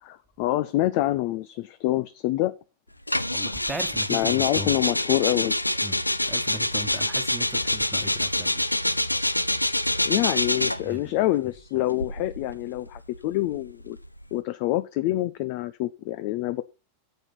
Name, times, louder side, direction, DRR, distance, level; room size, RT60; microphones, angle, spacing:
voice 1, 0.0-2.5 4.1-5.6 10.0-14.0 14.3-16.6, left 16 dB, 45° left, 0.6 m, -26 dB
sound 1, 3.1-10.9 11.8-14.3, left 1 dB, 85° left, 0.5 m, -26 dB
voice 2, 3.3-4.8 5.8-6.0 6.3-8.6 10.8-11.2, right 1 dB, 5° right, 1.4 m, -38 dB
8.9 x 7.6 x 5.7 m
figure-of-eight pair, 90°, 0 cm